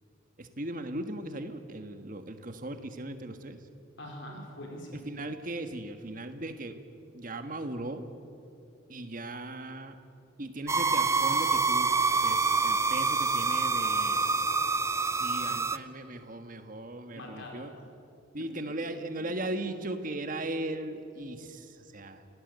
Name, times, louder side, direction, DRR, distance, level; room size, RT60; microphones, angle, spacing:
voice 1, 0.4-3.6 5.0-6.8 7.1-8.1 8.9-10.0 10.4-14.3 15.2-17.7 18.3-22.3, right 1 dB, 40° right, 8 dB, 1.5 m, -38 dB
voice 2, 4.0-5.0 13.8-14.6 15.4-15.6 17.1-17.6 18.4-18.5, left 1 dB, 65° left, 0 dB, 4.4 m, -45 dB
sound 1, 10.7-15.8, right 4 dB, 15° right, 0.4 m, -26 dB
26.5 x 17.5 x 8.1 m, 2.7 s
head